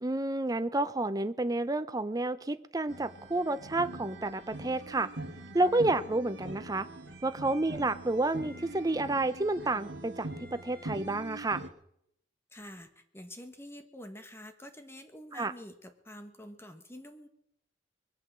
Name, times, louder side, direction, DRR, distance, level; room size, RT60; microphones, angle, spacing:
voice 1, 0.0-5.1 5.5-6.9 7.2-11.6 15.3-15.5, right 2 dB, 20° right, 12 dB, 0.7 m, -30 dB
sound 1, 2.9-11.7, right 2 dB, 70° right, 1.8 m, -43 dB
voice 2, 12.5-17.3, left 1 dB, 15° left, 7 dB, 1.4 m, -47 dB
21.5 x 8.7 x 7.5 m, 0.75 s
head